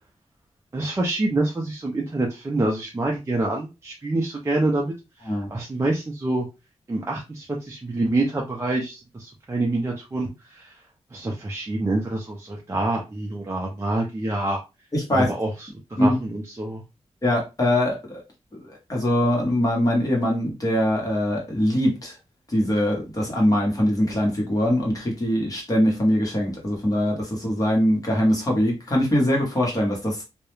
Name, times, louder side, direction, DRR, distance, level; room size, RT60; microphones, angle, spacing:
voice 1, 0.7-4.9 5.2-6.5 6.9-10.7 11.1-14.6 15.1-15.7 16.0-16.8, right 2 dB, 25° right, -1 dB, 0.4 m, -26 dB
voice 2, 14.9-15.3 16.0-16.2 17.2-18.2 18.6-22.2 22.5-30.2, left 1 dB, 30° left, -1 dB, 1.0 m, -22 dB
2.3 x 2.0 x 3.0 m, 0.26 s
wide cardioid pair, 155°, 11 cm